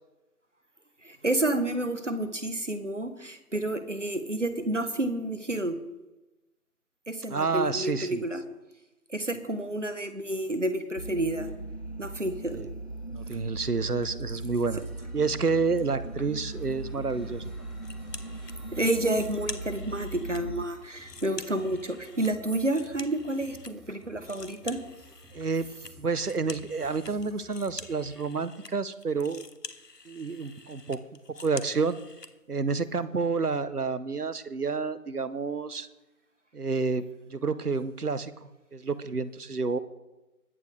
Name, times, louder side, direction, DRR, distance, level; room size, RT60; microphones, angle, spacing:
voice 1, 1.0-5.7 7.1-8.4 9.1-11.5 12.0-12.6 17.2-17.3 18.7-24.8, right 1 dB, 50° right, 10 dB, 1.3 m, -30 dB
voice 2, 7.3-8.2 12.5-12.7 13.1-14.8 15.1-17.5 25.3-25.7 26.0-29.4 30.1-31.0 31.4-32.0 32.5-35.9 36.5-37.0 37.3-39.8, right 4 dB, 75° right, 15 dB, 1.0 m, -29 dB
sound 1, 11.0-20.7, right 2 dB, 45° left, 0.5 m, -38 dB
sound 2, 14.8-28.3, left 1 dB, ahead, 0.9 m, -54 dB
sound 3, 17.8-18.6 18.9-20.4 20.8-23.7 24.0-32.3, left 3 dB, 85° left, 1.4 m, -46 dB
21.5 x 8.1 x 3.4 m, 1.0 s
figure-of-eight pair, 180°, 47 cm